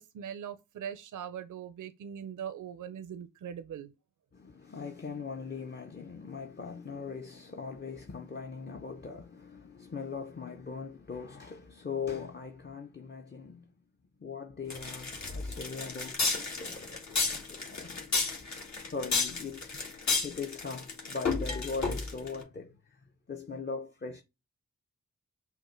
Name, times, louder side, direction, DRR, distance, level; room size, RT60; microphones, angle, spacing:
voice 1, 0.0-3.9, right 8 dB, 75° right, 0.6 m, -41 dB
voice 2, 4.3-13.7 14.2-18.0 18.4-18.5 18.8-24.2, left 5 dB, 35° left, 0.7 m, -40 dB
sound 1, 14.7-22.4, left 4 dB, 60° left, 1.5 m, -32 dB
5.6 x 2.1 x 4.4 m
cardioid pair, 40°, 31 cm